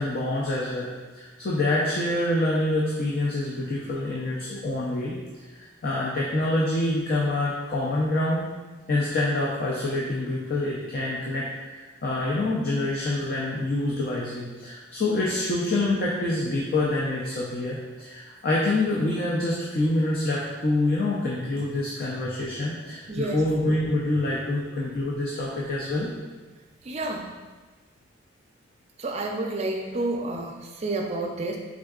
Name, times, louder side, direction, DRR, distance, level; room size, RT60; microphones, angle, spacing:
voice 1, 0.0-5.2 5.5-8.5 8.9-26.1, left 2 dB, 50° left, -5 dB, 0.5 m, -26 dB
voice 2, 23.1-23.4 26.9-27.2 29.0-31.6, right 2 dB, 35° right, 1 dB, 0.4 m, -29 dB
4.3 x 3.6 x 2.4 m, 1.3 s
head